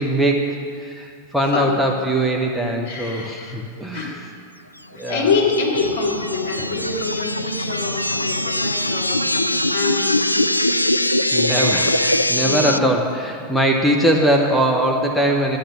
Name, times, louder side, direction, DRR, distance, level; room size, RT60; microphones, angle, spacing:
voice 1, 0.0-4.2 4.9-5.3 11.3-15.6, right 1 dB, ahead, 0 dB, 1.1 m, -21 dB
voice 2, 2.8-4.3 4.9-10.4 11.2-11.3 12.4-12.8, left 4 dB, 55° left, -1 dB, 2.6 m, -25 dB
sound 1, 5.1-12.8, left 1 dB, 85° left, 0.3 m, -22 dB
11.5 x 9.1 x 7.3 m, 2.2 s
figure-of-eight pair, 90°, 0 cm